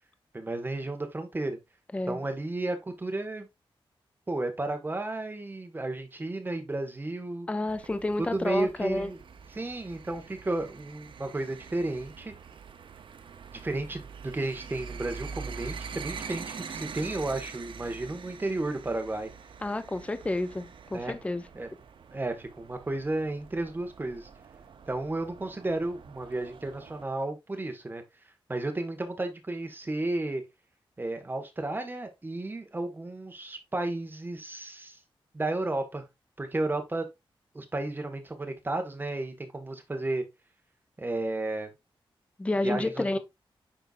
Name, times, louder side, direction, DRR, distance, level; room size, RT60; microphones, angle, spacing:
voice 1, 0.3-1.6 2.1-3.5 4.3-7.5 8.2-9.2 9.5-12.3 13.5-19.3 20.9-21.2 21.5-21.7 22.1-24.3 24.9-28.0 28.5-30.4 31.0-35.0 35.3-36.0 36.4-37.1 37.5-40.2 41.0-41.7 42.6-43.2, right 2 dB, 20° right, 1.6 m, -33 dB
voice 2, 7.5-9.1 19.6-21.4 42.4-43.2, left 2 dB, 15° left, 0.5 m, -30 dB
sound 1, 7.7-27.1, right 6 dB, 65° right, 0.7 m, -45 dB
10.0 x 4.6 x 2.5 m
wide cardioid pair, 130°, 9 cm